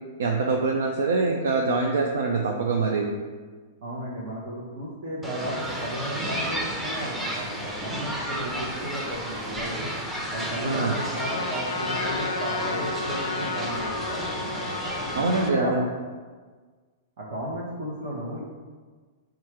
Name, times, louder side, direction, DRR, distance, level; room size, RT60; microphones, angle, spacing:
voice 1, 0.2-3.2 10.6-10.9 15.1-15.9, right 3 dB, 85° right, 0 dB, 0.5 m, -24 dB
voice 2, 3.8-9.9 10.3-14.7 15.1-15.7 17.2-18.4, right 1 dB, 60° right, -6 dB, 1.0 m, -34 dB
sound 1, 5.2-15.5, equal, 10° right, 0.7 m, -32 dB
Trumpet, 11.0-15.6, left 3 dB, 85° left, 0.4 m, -32 dB
4.5 x 2.5 x 4.4 m, 1.5 s
hypercardioid pair, 125°, 0 cm